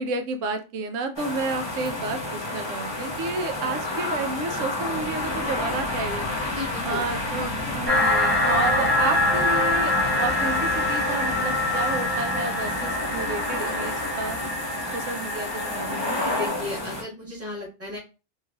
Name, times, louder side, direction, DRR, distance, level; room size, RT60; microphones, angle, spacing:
voice 1, 0.0-6.3 6.8-14.5 14.9-16.2, right 3 dB, 85° right, 6 dB, 0.9 m, -31 dB
sound 1, 1.2-17.0, left 2 dB, 25° left, 0.8 m, -30 dB
sound 2, 4.9-16.8, left 3 dB, 60° left, 0.5 m, -40 dB
voice 2, 6.5-7.0 16.2-18.0, left 2 dB, 10° right, -5 dB, 1.3 m, -35 dB
sound 3, 7.9-16.5, left 1 dB, 70° right, 1.7 m, -25 dB
3.1 x 2.6 x 2.3 m, 0.30 s
omnidirectional pair, 1.3 m